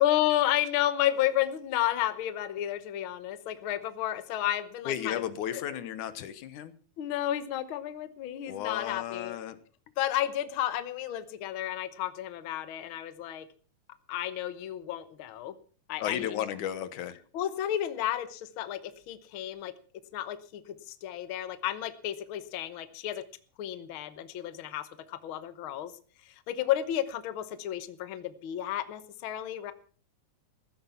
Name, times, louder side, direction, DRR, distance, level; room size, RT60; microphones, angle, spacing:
voice 1, 0.0-5.2 5.5-5.8 7.0-9.4 10.0-13.5 14.1-15.5 15.9-16.4 17.3-19.7 20.1-23.2 23.6-25.9 26.2-29.7, left 12 dB, 60° left, 12 dB, 1.5 m, -32 dB
voice 2, 4.9-6.7 8.5-9.6 16.0-17.2, left 10 dB, 85° left, 13 dB, 2.6 m, -34 dB
15.5 x 11.5 x 5.7 m, 0.41 s
omnidirectional pair, 3.4 m